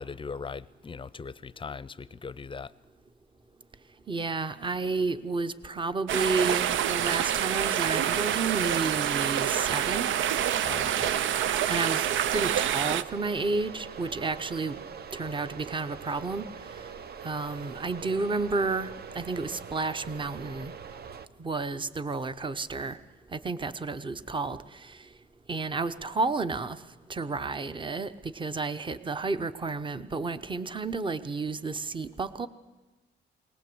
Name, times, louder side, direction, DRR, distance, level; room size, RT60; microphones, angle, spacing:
voice 1, 0.0-2.7 10.6-11.2, left 5 dB, 25° left, 19 dB, 0.6 m, -39 dB
voice 2, 4.1-10.1 11.7-14.9 15.1-16.5 17.2-20.7 21.4-23.0 23.3-25.1 25.5-26.8 27.1-32.5, right 3 dB, 25° right, 13 dB, 0.9 m, -31 dB
sound 1, 6.1-13.0, right 10 dB, 75° right, 0.6 m, -27 dB
sound 2, 6.3-21.3, right 6 dB, 50° right, 1.0 m, -43 dB
21.5 x 18.5 x 7.9 m, 1.2 s
cardioid pair, 90°, 20 cm